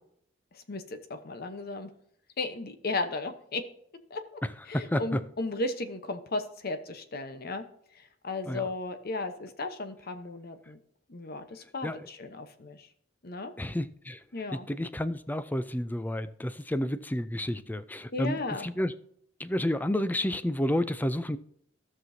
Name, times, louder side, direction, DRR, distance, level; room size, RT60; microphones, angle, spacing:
voice 1, 0.5-1.9 2.4-3.6 4.1-4.2 4.7-7.6 7.9-10.8 11.1-12.9 13.2-13.5 14.3-14.7 18.1-18.7, left 3 dB, 55° left, 0.9 m, -35 dB
voice 2, 4.4-5.2 8.5-8.7 11.8-12.0 13.6-14.2 14.5-18.9 19.4-21.4, left 1 dB, 10° left, 0.4 m, -30 dB
15.5 x 6.1 x 2.7 m
head